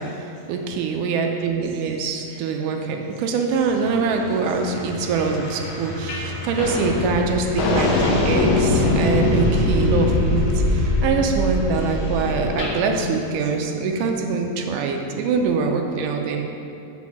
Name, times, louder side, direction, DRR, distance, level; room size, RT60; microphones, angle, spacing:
voice 1, 0.0-16.4, right 5 dB, 80° right, 3 dB, 2.0 m, -24 dB
sound 1, 3.5-13.2, left 4 dB, 45° left, 0.5 m, -29 dB
sound 2, 6.1-6.3 6.6-12.8, left 1 dB, 80° left, 1.4 m, -22 dB
6.1 x 4.6 x 5.9 m, 2.7 s
omnidirectional pair, 4.0 m